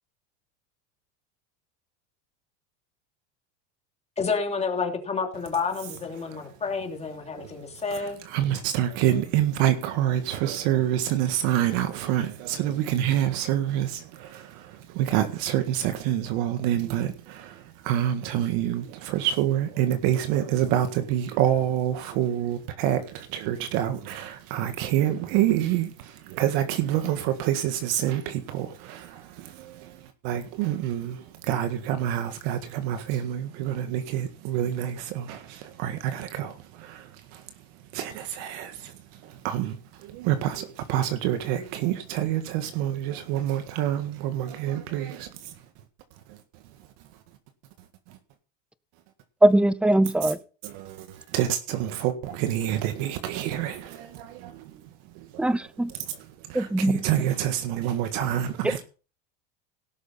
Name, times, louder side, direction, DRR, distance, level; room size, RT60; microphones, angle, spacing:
voice 1, 4.2-8.2, left 5 dB, 20° left, 3.1 m, -29 dB
voice 2, 7.3-45.6 46.3-46.4 48.1-48.2 50.2-50.3 50.6-58.8, right 11 dB, 70° right, 1.8 m, -27 dB
voice 3, 49.4-50.4 55.4-55.9 56.5-57.0, right 1 dB, 5° right, 0.6 m, -21 dB
17.5 x 6.7 x 5.6 m
supercardioid pair, 130°, 34 cm